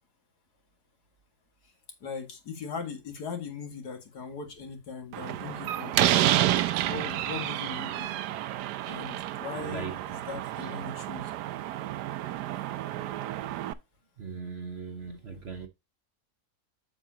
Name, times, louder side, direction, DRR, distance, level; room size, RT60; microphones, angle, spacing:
voice 1, 2.0-6.1 6.8-8.2 8.9-11.3, left 5 dB, 70° left, 2.4 m, -39 dB
Slam, 5.1-13.7, right 13 dB, 85° right, 1.2 m, -30 dB
voice 2, 9.5-10.0 10.6-10.7 14.2-15.7, right 5 dB, 45° right, 1.1 m, -39 dB
8.0 x 7.4 x 2.8 m
omnidirectional pair, 1.7 m